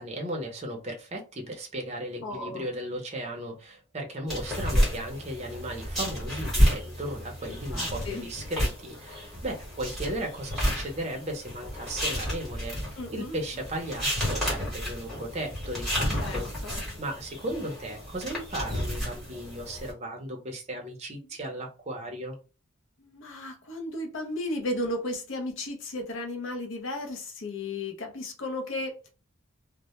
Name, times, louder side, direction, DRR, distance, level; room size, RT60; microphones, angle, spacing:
voice 1, 0.0-16.5 17.0-22.4, right 1 dB, 30° right, 0.5 m, -36 dB
voice 2, 2.2-2.6 7.7-8.2 13.0-13.4 16.2-16.8 23.0-29.1, left 1 dB, 65° left, 0.5 m, -34 dB
sound 1, 4.3-19.9, equal, ahead, 1.0 m, -31 dB
2.1 x 2.1 x 2.9 m
head